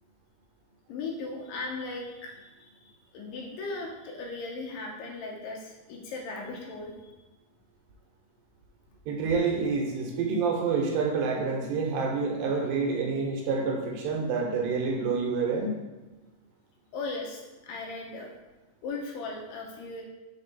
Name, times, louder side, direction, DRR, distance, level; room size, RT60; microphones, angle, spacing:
voice 1, 0.9-7.1 16.9-18.3 18.8-20.0, left 3 dB, 75° left, 0 dB, 2.2 m, -37 dB
voice 2, 9.1-15.7, right 4 dB, 75° right, 0 dB, 2.6 m, -28 dB
6.0 x 4.2 x 4.2 m, 1.1 s
omnidirectional pair, 4.4 m